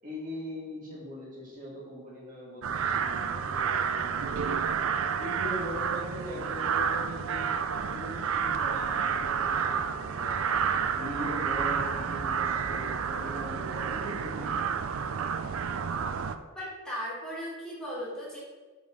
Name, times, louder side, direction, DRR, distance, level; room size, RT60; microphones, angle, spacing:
voice 1, 0.0-4.6 5.1-10.4 10.9-14.7, left 1 dB, 40° right, -5 dB, 1.7 m, -40 dB
sound 1, 2.6-16.4, right 6 dB, 70° right, 0.4 m, -30 dB
sound 2, 9.5-13.5, left 1 dB, 40° left, 0.6 m, -50 dB
voice 2, 16.5-18.4, equal, 5° left, -8 dB, 2.2 m, -37 dB
7.0 x 4.2 x 4.9 m, 1.2 s
head